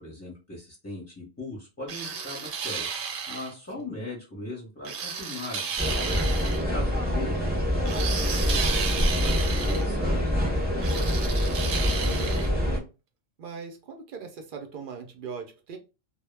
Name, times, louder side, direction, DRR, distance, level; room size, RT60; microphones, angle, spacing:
voice 1, 0.0-2.9 3.3-6.0 6.5-7.5 7.8-11.1, left 1 dB, 15° left, 0.7 m, -39 dB
sound 1, 1.9-3.5 4.8-6.6 7.9-9.9 10.8-12.5, right 6 dB, 85° right, 0.9 m, -33 dB
sound 2, 5.8-12.8, equal, 15° right, 0.3 m, -25 dB
voice 2, 12.0-12.9 13.4-15.8, right 6 dB, 60° right, 0.6 m, -40 dB
2.2 x 2.0 x 3.1 m
omnidirectional pair, 1.3 m